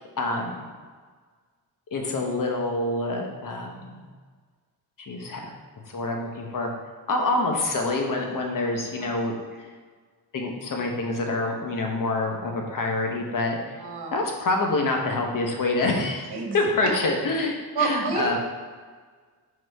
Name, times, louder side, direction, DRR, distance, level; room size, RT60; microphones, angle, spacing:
voice 1, 0.2-0.7 1.9-4.0 5.0-5.4 5.9-6.7 7.1-9.3 10.3-13.8 14.1-18.4, left 2 dB, 55° left, 1 dB, 1.0 m, -26 dB
voice 2, 13.8-14.1 16.3-16.6 17.7-18.4, right 4 dB, 70° right, 0 dB, 1.3 m, -28 dB
5.2 x 4.1 x 4.7 m, 1.5 s
wide cardioid pair, 170°, 40 cm